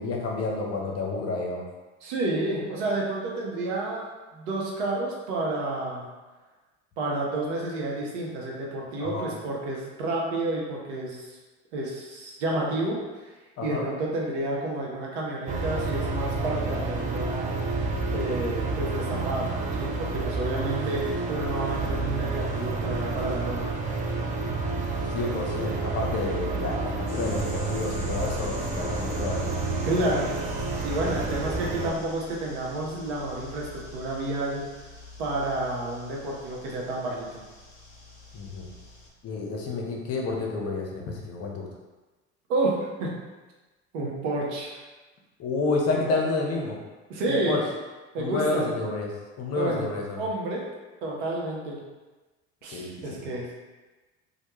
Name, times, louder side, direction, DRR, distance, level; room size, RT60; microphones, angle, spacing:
voice 1, 0.0-1.6 9.0-9.3 13.6-13.9 25.1-29.6 38.3-38.7 39.2-41.7 45.4-46.8 47.3-47.6 48.2-49.1 49.4-50.2 52.7-53.2, left 3 dB, 45° left, 0 dB, 0.6 m, -30 dB
voice 2, 2.0-6.1 7.0-11.3 11.7-13.0 13.6-17.6 18.1-23.7 29.8-30.4 30.8-34.7 35.2-37.4 42.5-43.1 43.9-44.8 45.9-46.1 47.1-47.6 48.1-48.7 49.5-50.7 51.0-51.8 52.6-53.6, right 2 dB, 70° right, -3 dB, 0.7 m, -30 dB
sound 1, 15.5-31.9, right 3 dB, 25° right, 0.3 m, -29 dB
sound 2, 27.1-39.1, left 3 dB, 20° left, 1.0 m, -43 dB
2.2 x 2.1 x 3.0 m, 1.2 s
hypercardioid pair, 65°, 35 cm